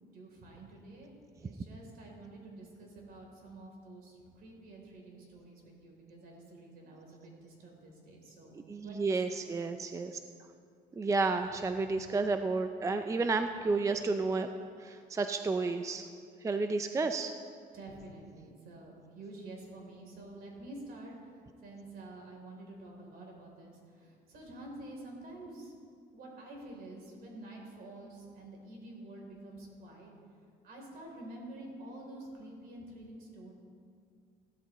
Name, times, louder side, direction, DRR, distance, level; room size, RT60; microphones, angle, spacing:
voice 1, 0.0-8.5 8.8-9.1 17.7-25.7 26.1-30.1 30.6-33.5, right 2 dB, 65° right, 0 dB, 3.4 m, -49 dB
voice 2, 8.7-10.2 11.0-14.5 14.8-16.0 16.4-17.3, right 3 dB, 20° right, 8 dB, 0.4 m, -31 dB
15.5 x 12.5 x 3.1 m, 2.2 s
cardioid pair, 110°, 17 cm